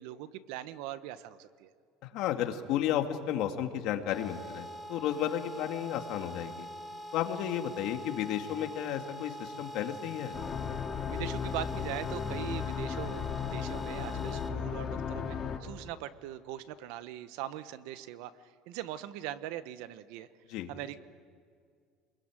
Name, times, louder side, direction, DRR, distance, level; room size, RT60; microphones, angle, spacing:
voice 1, 0.0-1.7 11.1-18.3 18.7-20.3 20.7-21.0, right 12 dB, 75° right, 13 dB, 1.2 m, -41 dB
voice 2, 2.1-6.7 7.1-10.3 20.5-20.7, left 10 dB, 60° left, 5 dB, 2.2 m, -33 dB
sound 1, 4.1-14.5, equal, 10° right, 2.6 m, -44 dB
sound 2, 10.3-15.6, left 7 dB, 30° left, 2.4 m, -35 dB
28.5 x 21.5 x 9.1 m, 2.1 s
cardioid pair, 145°, 0 cm